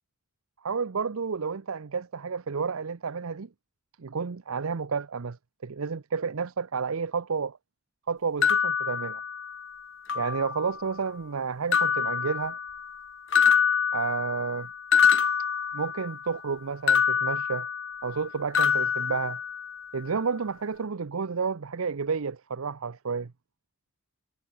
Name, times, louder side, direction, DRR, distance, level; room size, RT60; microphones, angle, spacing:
voice 1, 0.6-3.5 4.0-5.4 5.6-7.6 8.1-9.2 10.1-12.6 13.9-14.7 15.7-17.7 18.0-19.4 19.9-23.3, right 5 dB, 85° right, 0.7 m, -31 dB
sound 1, 8.4-9.7 10.1-10.9 11.7-13.0 13.3-16.3 16.9-18.3 18.5-19.9, left 7 dB, 60° left, 1.0 m, -26 dB
head